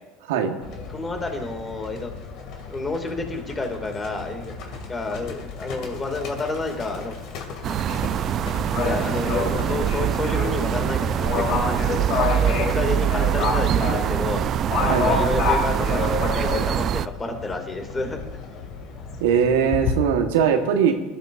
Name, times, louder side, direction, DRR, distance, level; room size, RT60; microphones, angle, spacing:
Livestock farm animals working animals, 0.6-20.0, left 4 dB, 60° left, 2.6 m, -30 dB
voice 1, 0.9-2.1 2.7-4.5 4.9-7.1 8.7-12.0 12.4-14.4 14.8-18.2, left 3 dB, 20° left, 4 dB, 2.5 m, -30 dB
sound 1, 7.6-17.1, right 10 dB, 45° right, 0.4 m, -24 dB
voice 2, 14.9-15.2 19.2-20.9, right 7 dB, 80° right, 4 dB, 1.4 m, -20 dB
20.5 x 12.0 x 2.7 m, 1.2 s
hypercardioid pair, 95°, 0 cm